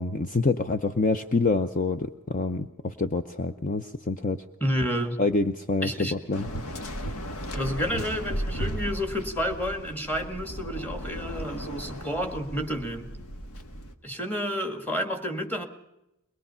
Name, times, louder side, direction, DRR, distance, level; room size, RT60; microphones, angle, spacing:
voice 1, 0.0-4.4 5.2-6.5, left 3 dB, 35° left, 8 dB, 0.6 m, -26 dB
voice 2, 4.6-5.2 5.8-6.1 7.5-13.1 14.0-15.6, equal, 10° left, 4 dB, 1.8 m, -30 dB
Waves surf, 6.3-13.9, equal, 80° left, 1.5 m, -35 dB
22.5 x 21.0 x 5.6 m, 0.91 s
head